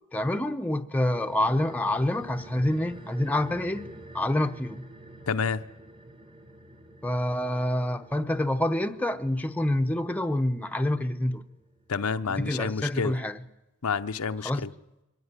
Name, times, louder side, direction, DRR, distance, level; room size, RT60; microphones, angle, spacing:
voice 1, 0.1-4.9 7.0-11.4 12.3-13.4 14.4-14.7, left 1 dB, 5° left, 0.8 m, -27 dB
sound 1, 1.1-11.9 12.2-12.3, right 1 dB, 25° right, 1.5 m, -48 dB
voice 2, 5.3-5.6 11.9-13.1 13.8-14.7, left 5 dB, 75° left, 0.8 m, -29 dB
23.5 x 16.0 x 9.8 m
head